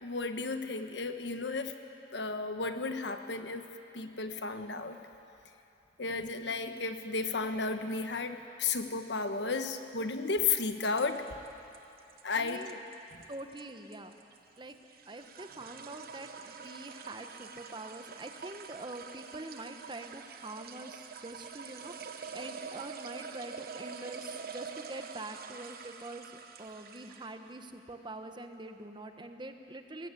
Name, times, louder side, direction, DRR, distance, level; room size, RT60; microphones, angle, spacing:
voice 1, 0.0-1.7 2.1-5.0 6.0-11.2 12.2-12.6, left 4 dB, 75° left, 7 dB, 1.2 m, -33 dB
sound 1, 10.3-27.4, right 5 dB, 55° right, 1.1 m, -46 dB
voice 2, 12.3-12.8 13.3-14.1 14.6-14.8 15.1-30.1, right 2 dB, 25° right, 6 dB, 1.1 m, -45 dB
21.0 x 17.5 x 8.4 m, 2.7 s
head